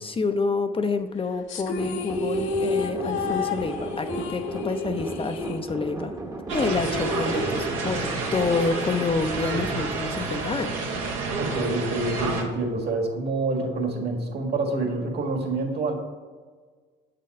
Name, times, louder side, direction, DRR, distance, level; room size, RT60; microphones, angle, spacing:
voice 1, 0.0-6.1 6.5-11.0, left 4 dB, 25° left, 7 dB, 0.5 m, -28 dB
sound 1, 1.5-6.2 6.4-6.5 6.8-9.5, left 3 dB, 75° left, 0.9 m, -31 dB
sound 2, 1.8-10.1, right 2 dB, 15° right, 0.9 m, -36 dB
sound 3, 6.5-12.4, right 3 dB, 80° right, 1.3 m, -29 dB
voice 2, 11.4-15.9, right 2 dB, 55° right, 2 dB, 1.8 m, -27 dB
7.3 x 4.1 x 5.2 m, 1.5 s
supercardioid pair, 70°, 20 cm